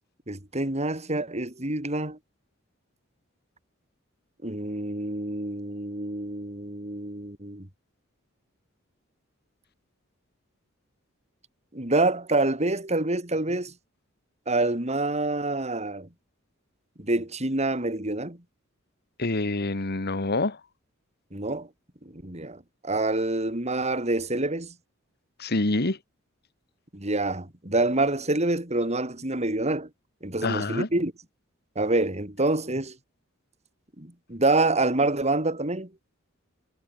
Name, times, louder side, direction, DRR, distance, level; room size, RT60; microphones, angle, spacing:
voice 1, 0.3-2.2 4.4-7.7 11.7-13.7 14.5-16.1 17.0-18.4 21.3-21.7 22.0-24.7 26.9-29.9 30.2-31.1 31.8-33.0 34.0-35.9, right 2 dB, 35° right, 4.4 m, -27 dB
voice 2, 19.2-20.6 25.4-26.0 30.4-30.9, left 2 dB, 50° left, 1.7 m, -26 dB
head